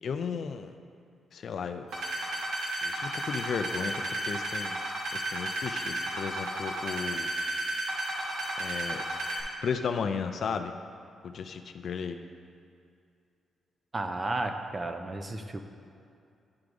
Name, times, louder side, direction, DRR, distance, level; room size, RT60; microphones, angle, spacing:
voice 1, 0.0-0.7 1.3-1.9 2.8-3.9 4.3-4.8 5.1-7.3 8.6-9.0 9.6-10.7 11.2-12.2, left 6 dB, 60° left, 7 dB, 0.3 m, -34 dB
sound 1, 1.9-9.4, right 1 dB, 85° right, 1.4 m, -33 dB
voice 2, 13.9-15.6, right 2 dB, 30° right, 6 dB, 0.4 m, -33 dB
10.5 x 4.7 x 2.5 m, 2.4 s
cardioid pair, 105°, 0 cm